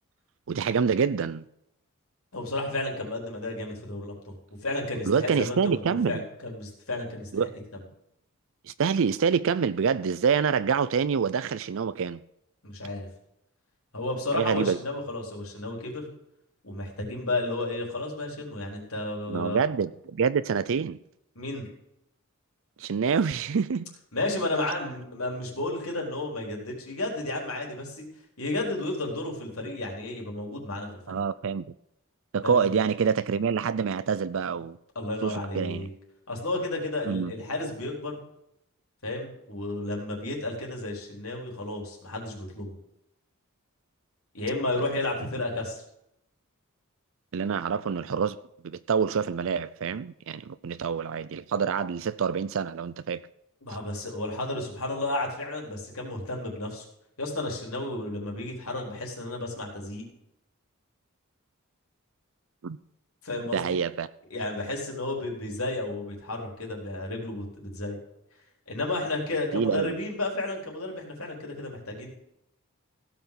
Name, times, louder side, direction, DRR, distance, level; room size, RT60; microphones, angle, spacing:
voice 1, 0.5-1.4 5.0-6.2 7.3-7.6 8.7-12.2 14.3-14.8 19.3-21.0 22.8-23.8 31.1-31.6 32.3-34.8 35.2-35.9 37.1-37.3 47.3-48.4 48.6-53.2 62.6-62.8 63.5-64.1 69.5-69.9, right 6 dB, 65° right, 0.5 m, -26 dB
voice 2, 2.3-4.4 4.6-7.3 12.6-13.1 13.9-16.1 16.6-19.6 21.4-21.7 24.1-28.0 28.4-31.2 32.4-32.7 34.9-35.9 36.3-38.2 39.0-42.7 44.3-45.8 53.6-56.9 57.2-60.0 63.2-63.8 64.3-68.0 68.7-72.1, left 2 dB, 75° left, 4.2 m, -32 dB
16.5 x 6.0 x 7.0 m
head